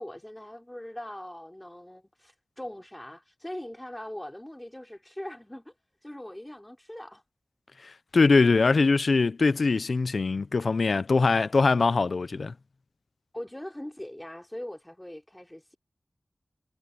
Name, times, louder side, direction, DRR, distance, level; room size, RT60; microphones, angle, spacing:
voice 1, 0.0-5.7 6.0-7.2 13.3-15.8, left 1 dB, 15° left, 4.8 m, -41 dB
voice 2, 8.1-12.5, left 4 dB, 80° left, 0.6 m, -22 dB
wide cardioid pair, 75°, 0 cm